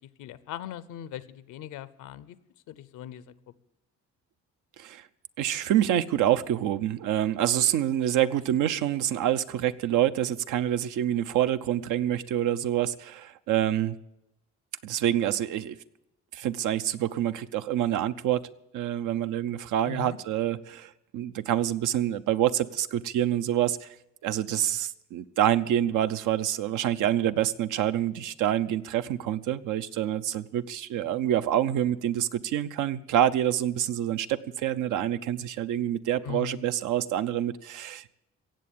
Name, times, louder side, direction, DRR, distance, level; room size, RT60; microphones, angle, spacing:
voice 1, 0.2-2.4 2.7-3.5 8.5-8.6 19.8-20.2 31.0-31.2 36.2-36.6, left 11 dB, 90° left, 16 dB, 0.8 m, -40 dB
voice 2, 5.4-14.0 14.8-15.8 16.3-18.5 18.7-23.9 24.2-38.1, right 11 dB, 85° right, 12 dB, 0.7 m, -27 dB
16.5 x 7.7 x 8.5 m, 0.90 s
cardioid pair, 90°, 30 cm